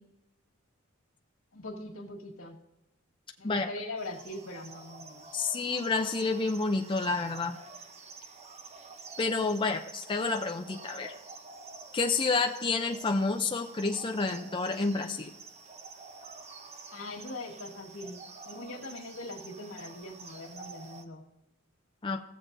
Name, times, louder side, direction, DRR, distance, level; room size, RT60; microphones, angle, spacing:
voice 1, 1.5-2.6 3.4-5.3 16.9-21.3, left 2 dB, 85° left, 0 dB, 1.8 m, -41 dB
sound 1, 4.0-21.0, right 4 dB, 30° right, 0.8 m, -48 dB
voice 2, 5.3-7.6 9.2-11.1 11.9-15.3 22.0-22.2, left 3 dB, 25° left, 4 dB, 0.5 m, -29 dB
16.0 x 7.4 x 2.6 m, 0.97 s
head